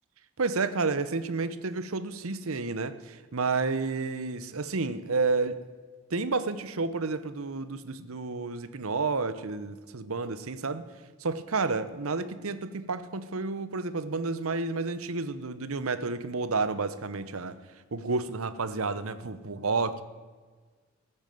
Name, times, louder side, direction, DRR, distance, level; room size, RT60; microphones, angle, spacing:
voice 1, 0.4-5.6 6.1-10.9 11.2-17.5 17.9-20.0, right 4 dB, 70° right, 13 dB, 0.8 m, -30 dB
14.5 x 9.0 x 7.7 m, 1.5 s
head